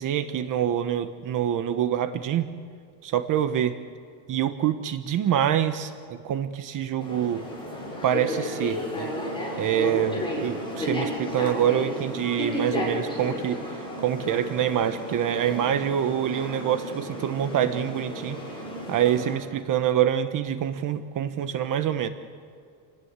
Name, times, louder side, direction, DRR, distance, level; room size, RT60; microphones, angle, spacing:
voice 1, 0.0-2.5 3.0-3.8 4.3-7.5 8.0-9.1 9.6-18.4 18.9-22.1, right 10 dB, 45° right, 9 dB, 1.2 m, -26 dB
sound 1, 7.0-19.3, equal, 10° left, 7.4 m, -33 dB
29.0 x 19.0 x 8.2 m, 2.3 s
cardioid pair, 165°, 46 cm